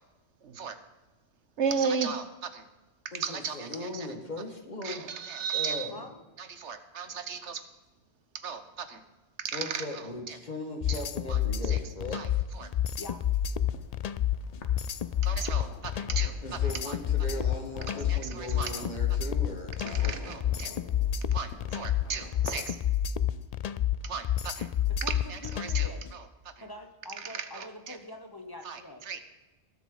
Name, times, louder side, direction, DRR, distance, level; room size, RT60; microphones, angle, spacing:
voice 1, 0.4-0.8 1.6-2.7 3.1-4.1 4.8-5.9 6.4-7.6 8.3-9.0 9.4-10.4 10.9-11.0 11.3-11.4 11.7-11.8 12.1-12.3 12.5-12.7 15.2-16.6 16.9-17.0 18.1-18.9 19.9-20.7 21.3-22.8 24.0-24.7 25.1-26.2 27.2-28.0 28.6-29.2, right 6 dB, 85° right, 10 dB, 1.3 m, -35 dB
voice 2, 3.1-5.0 5.5-6.1 7.1-7.2 9.5-12.4 16.4-20.4, left 1 dB, 40° left, 3 dB, 1.9 m, -39 dB
voice 3, 5.9-6.2 13.0-13.2 24.9-26.1 26.6-29.0, left 1 dB, 20° left, 5 dB, 1.1 m, -45 dB
sound 1, 10.8-26.1, left 10 dB, 60° left, 0.4 m, -29 dB
sound 2, 12.7-22.8, left 4 dB, 90° left, 1.5 m, -48 dB
19.5 x 8.2 x 3.9 m, 1.2 s
omnidirectional pair, 1.2 m